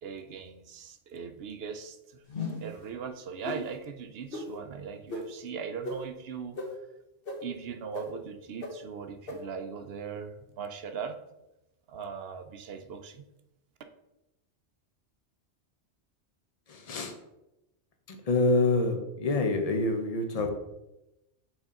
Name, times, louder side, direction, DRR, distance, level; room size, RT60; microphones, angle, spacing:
voice 1, 0.0-2.2 2.5-6.8 7.4-11.2 11.9-13.2, right 6 dB, 65° right, 8 dB, 0.8 m, -39 dB
sound 1, 2.3-2.7 3.4-3.6 4.3-4.4 5.1-5.2 5.8-5.9 6.6-6.7 7.3-7.4 7.9-8.0 8.6-8.7 9.3-9.4, left 3 dB, 55° left, 1.3 m, -35 dB
voice 2, 16.7-17.2 18.1-20.5, left 2 dB, 35° left, 4 dB, 0.8 m, -27 dB
6.1 x 4.1 x 3.7 m, 0.92 s
omnidirectional pair, 1.2 m